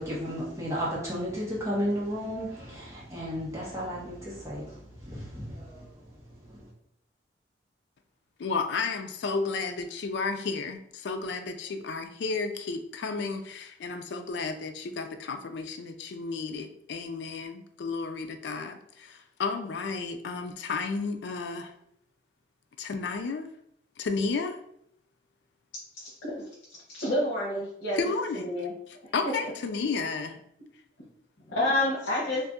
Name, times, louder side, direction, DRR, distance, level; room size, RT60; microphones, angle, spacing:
voice 1, 0.0-6.7, equal, 15° right, -7 dB, 1.0 m, -34 dB
voice 2, 8.4-21.7 22.8-23.5 24.0-24.6 28.0-28.5 28.9-30.4, left 4 dB, 65° left, 8 dB, 0.3 m, -32 dB
voice 3, 26.9-28.0 28.4-28.7 31.5-32.4, left 1 dB, 85° left, -6 dB, 0.8 m, -28 dB
2.6 x 2.5 x 3.5 m, 0.70 s
head